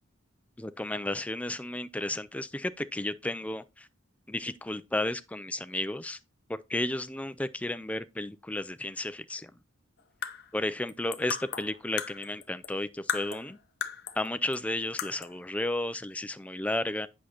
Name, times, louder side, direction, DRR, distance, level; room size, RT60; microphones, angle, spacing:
voice 1, 0.6-3.9 4.3-6.2 6.5-9.5 10.5-13.6 14.2-17.1, left 1 dB, 5° left, 0.3 m, -33 dB
sound 1, 10.0-12.8 13.1-14.3 14.5-14.6 15.0-15.4, left 8 dB, 50° left, 0.7 m, -36 dB
8.2 x 6.2 x 2.8 m
head